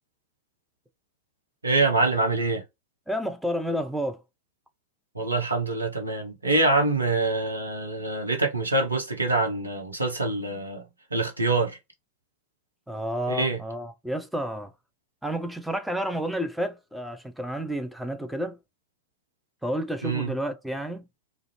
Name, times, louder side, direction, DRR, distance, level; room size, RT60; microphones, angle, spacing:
voice 1, 1.6-2.6 5.1-10.8 11.1-11.8 13.3-13.6 20.0-20.3, right 2 dB, 80° right, 0.7 m, -25 dB
voice 2, 3.1-4.2 12.9-14.7 15.2-18.6 19.6-21.0, equal, ahead, 0.4 m, -30 dB
2.4 x 2.1 x 2.8 m
figure-of-eight pair, 90°, 0 cm